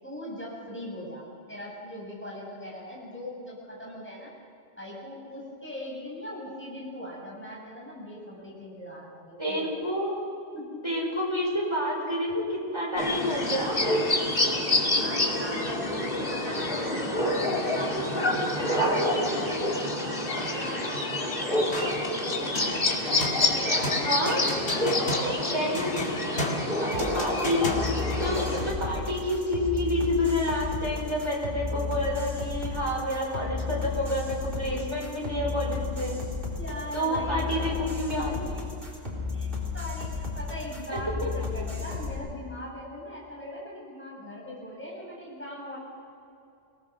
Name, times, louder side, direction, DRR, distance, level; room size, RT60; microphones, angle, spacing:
voice 1, 0.0-4.3 4.8-9.8 10.5-10.8 14.9-18.2 20.5-21.9 22.2-27.7 36.6-38.6 39.3-45.8, left 1 dB, 10° left, -4 dB, 7.2 m, -40 dB
voice 2, 9.4-10.2 10.8-14.1 16.7-19.3 24.0-24.5 25.5-25.9 26.8-27.6 28.2-36.2 36.9-38.4 40.9-41.3, equal, 25° right, -2 dB, 4.8 m, -29 dB
sound 1, 13.0-28.7, left 1 dB, 55° left, 2.5 m, -27 dB
sound 2, 21.7-22.1 22.5-28.2, left 1 dB, 75° left, 2.5 m, -34 dB
sound 3, 26.9-42.1, left 4 dB, 55° right, 4.3 m, -33 dB
24.0 x 18.5 x 6.2 m, 2.6 s
omnidirectional pair, 1.1 m